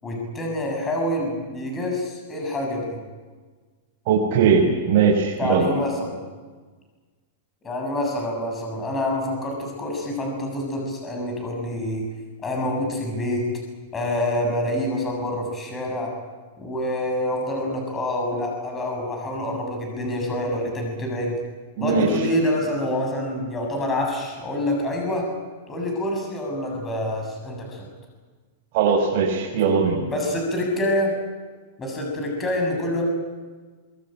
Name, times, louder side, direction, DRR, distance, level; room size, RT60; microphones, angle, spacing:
voice 1, 0.0-3.0 5.4-6.2 7.6-12.1 12.4-13.4 13.9-16.1 16.6-21.4 21.8-25.3 25.7-27.9 30.1-31.1 31.8-33.0, left 1 dB, 15° left, 1 dB, 7.3 m, -26 dB
voice 2, 4.1-5.7 21.8-22.3 28.7-30.0, right 5 dB, 45° right, -1 dB, 5.5 m, -20 dB
25.0 x 22.0 x 9.0 m, 1.4 s
supercardioid pair, 155°, 0 cm